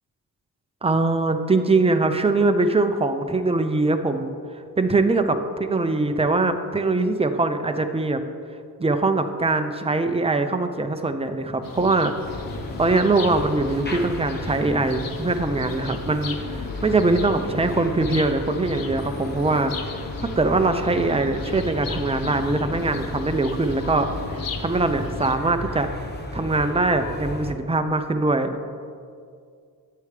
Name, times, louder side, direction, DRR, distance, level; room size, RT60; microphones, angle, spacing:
voice 1, 0.8-4.3 4.8-8.2 8.8-12.1 12.8-16.4 16.8-19.7 20.2-24.1 24.6-25.9 26.3-28.5, right 3 dB, 15° right, 7 dB, 0.5 m, -22 dB
sound 1, 11.6-25.4, left 5 dB, 65° left, 0.7 m, -36 dB
sound 2, 12.2-27.5, left 1 dB, 25° left, 1.0 m, -34 dB
10.0 x 8.6 x 3.3 m, 2.2 s
wide cardioid pair, 100°, 37 cm